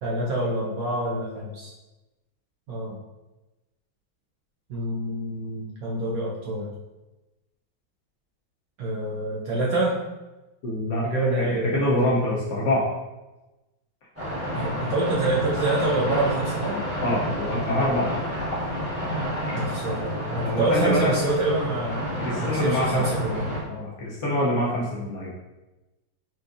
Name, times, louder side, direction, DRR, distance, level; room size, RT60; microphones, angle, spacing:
voice 1, 0.0-1.7 2.7-3.0 4.7-6.7 8.8-10.0 11.0-11.9 14.5-16.8 19.5-22.1 22.4-23.5, right 2 dB, 90° right, -4 dB, 0.7 m, -26 dB
voice 2, 10.6-11.0 11.7-12.9 17.0-18.1 20.5-21.1 22.2-23.0 23.7-25.3, left 1 dB, 80° left, -5 dB, 0.6 m, -25 dB
sound 1, 14.2-23.6, equal, 15° right, 0.6 m, -30 dB
4.3 x 2.5 x 2.4 m, 1.0 s
omnidirectional pair, 2.1 m